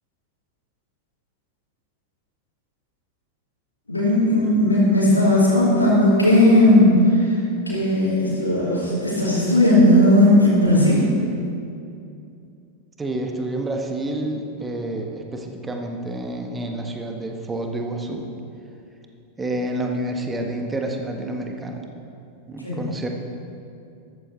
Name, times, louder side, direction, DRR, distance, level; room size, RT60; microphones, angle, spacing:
voice 1, 3.9-7.4 7.7-11.0 22.6-22.8, left 1 dB, 80° left, -7 dB, 3.5 m, -16 dB
voice 2, 13.0-18.3 19.4-21.8 22.5-23.1, right 1 dB, 15° right, 3 dB, 1.5 m, -28 dB
14.0 x 13.5 x 4.2 m, 2.6 s
figure-of-eight pair, 90°, 0 cm